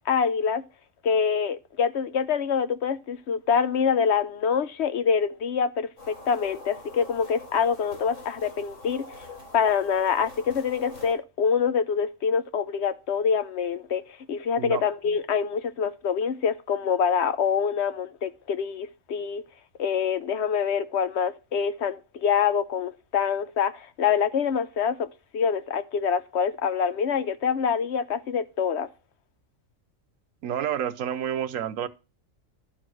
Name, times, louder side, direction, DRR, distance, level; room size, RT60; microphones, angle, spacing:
voice 1, 0.1-0.6 1.0-9.3 9.5-14.0 14.3-19.4 19.8-25.1 25.3-28.9, left 6 dB, 60° left, 0.9 m, -25 dB
sound 1, 6.0-11.1, left 3 dB, 80° left, 4.6 m, -44 dB
voice 2, 30.4-31.9, right 9 dB, 80° right, 1.1 m, -29 dB
11.0 x 4.8 x 6.2 m
omnidirectional pair, 1.4 m